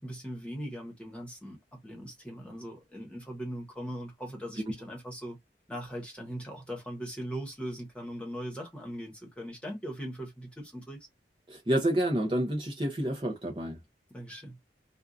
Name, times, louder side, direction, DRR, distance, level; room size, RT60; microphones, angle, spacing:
voice 1, 0.0-5.4 5.7-11.0 14.1-14.6, equal, 5° left, 1.1 m, -40 dB
voice 2, 11.5-13.8, right 1 dB, 30° right, 0.7 m, -29 dB
2.6 x 2.4 x 2.4 m
head